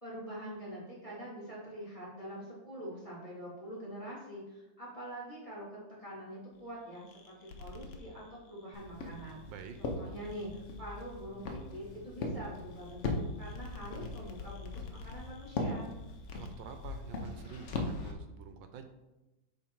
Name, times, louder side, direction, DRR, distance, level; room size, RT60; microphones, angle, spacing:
voice 1, 0.0-9.4 9.8-15.9, equal, 15° left, -6 dB, 2.1 m, -45 dB
sound 1, 6.5-17.8, left 3 dB, 75° left, 1.6 m, -54 dB
Walk footsteps, 8.7-18.1, left 2 dB, 60° left, 0.7 m, -40 dB
voice 2, 16.3-18.9, right 6 dB, 75° right, 8 dB, 1.3 m, -48 dB
7.7 x 3.7 x 4.5 m, 1.0 s
omnidirectional pair, 2.2 m